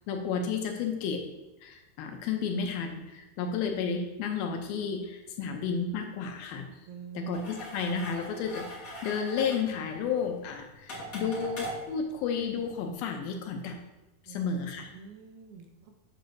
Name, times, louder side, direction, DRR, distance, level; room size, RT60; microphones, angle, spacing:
voice 1, 0.1-1.2 1.6-6.7 7.2-13.8 14.2-14.9, left 6 dB, 80° left, 3 dB, 2.4 m, -32 dB
voice 2, 6.9-7.6 14.3-14.5 14.8-15.9, right 7 dB, 80° right, 4 dB, 2.5 m, -46 dB
sound 1, 7.3-12.9, right 1 dB, 45° left, 1.1 m, -42 dB
8.0 x 7.6 x 2.6 m, 1.0 s
omnidirectional pair, 4.6 m